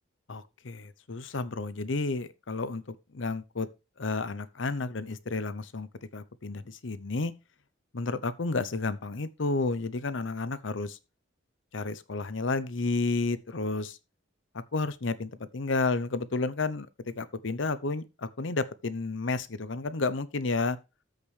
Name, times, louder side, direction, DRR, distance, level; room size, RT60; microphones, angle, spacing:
voice 1, 0.3-3.7 4.0-7.3 7.9-11.0 11.7-14.0 14.5-20.8, left 3 dB, 70° left, 0.8 m, -31 dB
13.5 x 5.2 x 3.3 m
head